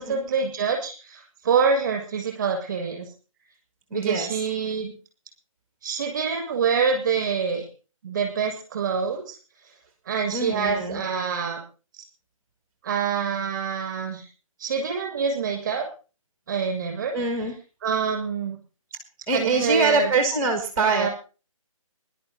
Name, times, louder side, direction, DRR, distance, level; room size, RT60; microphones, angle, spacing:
voice 1, 0.0-3.1 3.9-4.9 5.8-7.7 8.0-9.4 10.1-11.6 12.8-14.3 14.6-15.9 16.5-17.1 17.8-18.6 19.3-20.1 20.8-21.1, right 6 dB, 30° right, 4 dB, 7.2 m, -26 dB
voice 2, 3.9-4.4 10.3-11.0 17.1-17.6 19.3-21.1, right 3 dB, 15° right, 6 dB, 1.9 m, -24 dB
20.0 x 12.0 x 4.0 m, 0.35 s
figure-of-eight pair, 150°, 18 cm